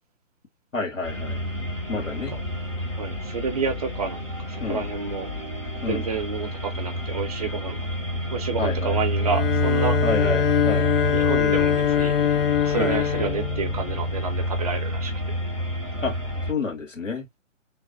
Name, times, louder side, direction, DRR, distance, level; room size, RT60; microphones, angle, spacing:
voice 1, 0.7-1.4 1.9-2.4 4.6-4.9 5.8-6.0 8.6-9.0 10.0-10.9 12.8-13.0 16.0-16.2 16.5-17.3, left 3 dB, 80° left, 1.9 m, -29 dB
sound 1, 1.0-16.5, equal, 10° left, 0.5 m, -29 dB
voice 2, 3.0-4.2 4.5-5.3 5.9-7.8 8.3-10.0 11.1-12.1 12.6-15.3, right 5 dB, 30° right, 0.7 m, -29 dB
Bowed string instrument, 9.2-14.4, left 9 dB, 50° left, 0.7 m, -23 dB
3.3 x 2.0 x 3.8 m
figure-of-eight pair, 135°, 38 cm